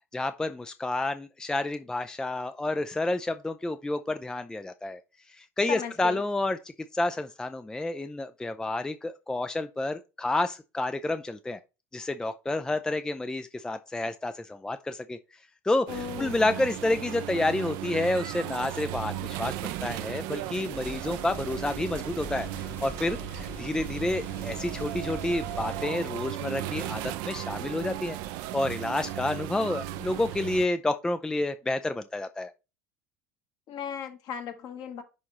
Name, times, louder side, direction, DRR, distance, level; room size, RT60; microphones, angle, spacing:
voice 1, 0.1-5.0 5.4-6.6 6.9-11.6 11.9-15.2 15.6-15.9 16.2-22.5 22.8-28.2 28.5-32.5, left 2 dB, 10° left, 0.4 m, -29 dB
voice 2, 5.7-6.2 15.9-16.4 33.7-35.0, left 8 dB, 50° left, 1.4 m, -36 dB
sound 1, 15.9-30.7, right 13 dB, 55° right, 0.5 m, -36 dB
sound 2, 20.7-25.9, left 3 dB, 25° left, 1.1 m, -44 dB
10.5 x 3.5 x 3.0 m
figure-of-eight pair, 70°, 9 cm